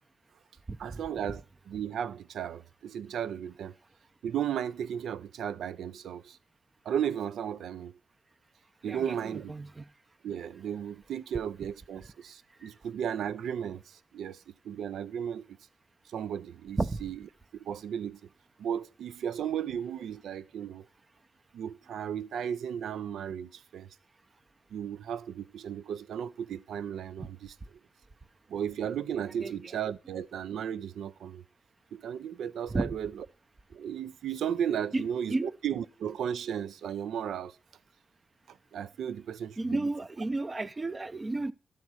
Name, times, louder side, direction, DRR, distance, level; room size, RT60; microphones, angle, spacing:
voice 1, 0.8-3.7 4.2-6.4 6.9-8.0 8.8-9.5 10.2-15.5 16.1-17.2 17.5-18.2 18.6-20.9 21.5-23.9 24.7-27.5 28.5-31.4 31.9-33.2 33.7-37.6 38.5-39.9, right 9 dB, 90° right, 0.4 m, -35 dB
voice 2, 8.8-9.8 16.8-17.0 29.4-29.7 32.7-33.0 34.9-35.0 35.3-35.5 39.6-41.5, right 2 dB, 25° right, 0.5 m, -32 dB
12.0 x 4.2 x 6.2 m
wide cardioid pair, 120°, 0 cm